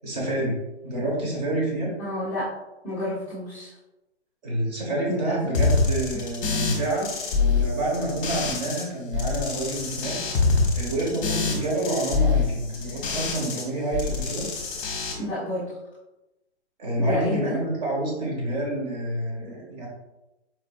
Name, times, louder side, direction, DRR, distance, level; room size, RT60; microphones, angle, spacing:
voice 1, 0.0-0.5 0.8-1.9 4.4-10.1 10.7-14.5 16.8-19.9, right 1 dB, 35° right, -2 dB, 1.3 m, -28 dB
voice 2, 2.0-2.4 2.8-3.7 5.1-5.4 15.2-15.7 17.0-17.6, left 1 dB, 5° left, -15 dB, 0.5 m, -30 dB
sound 1, 5.5-8.8 9.1-13.6 13.9-15.1, left 4 dB, 30° left, 0.8 m, -25 dB
4.7 x 2.6 x 2.6 m, 0.99 s
hypercardioid pair, 145°, 34 cm